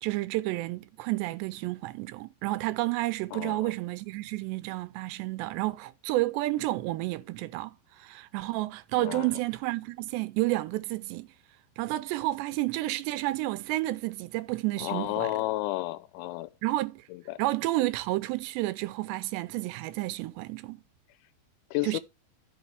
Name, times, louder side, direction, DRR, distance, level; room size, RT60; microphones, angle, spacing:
voice 1, 0.0-11.3 11.8-15.3 16.6-17.0 17.4-20.8 21.8-22.0, right 18 dB, 80° right, 2.6 m, -31 dB
voice 2, 3.3-3.7 9.0-9.3 14.8-16.5 17.1-17.4 21.7-22.0, left 17 dB, 85° left, 3.0 m, -32 dB
13.5 x 6.2 x 3.4 m
omnidirectional pair, 5.3 m